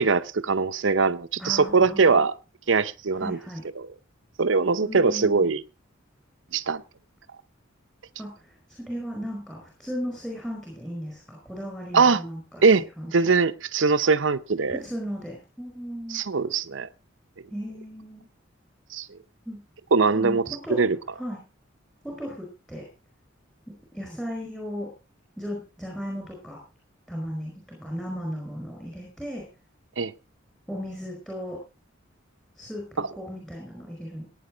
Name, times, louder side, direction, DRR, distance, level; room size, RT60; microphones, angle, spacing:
voice 1, 0.0-2.3 2.7-3.4 3.8-3.9 4.4-5.6 6.5-6.8 11.9-12.2 12.6-12.8 13.1-14.8 16.1-16.9 18.9-19.1 19.9-20.4 20.7-21.0 30.0-30.1 33.0-33.1, right 4 dB, 70° right, 0.7 m, -21 dB
voice 2, 1.4-2.2 3.1-3.6 4.8-5.5 8.2-13.3 14.7-16.2 17.5-18.3 19.4-19.6 20.1-20.8 21.1-21.4 22.0-22.9 23.9-24.9 25.4-26.6 27.1-29.5 30.7-31.6 32.5-34.2, equal, 5° left, 5.0 m, -36 dB
16.0 x 9.4 x 5.0 m
head